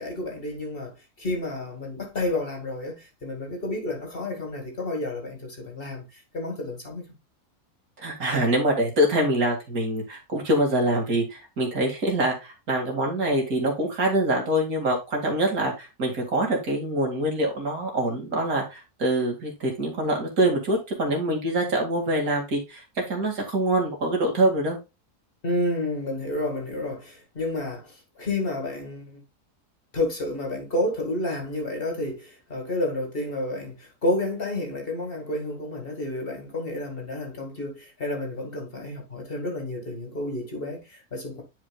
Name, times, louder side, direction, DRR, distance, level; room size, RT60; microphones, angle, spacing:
voice 1, 0.0-7.1 25.4-29.2 29.9-41.4, left 1 dB, 40° left, 2.1 m, -30 dB
voice 2, 8.0-24.8, right 1 dB, 75° right, 2.8 m, -25 dB
10.0 x 5.0 x 2.3 m
omnidirectional pair, 1.5 m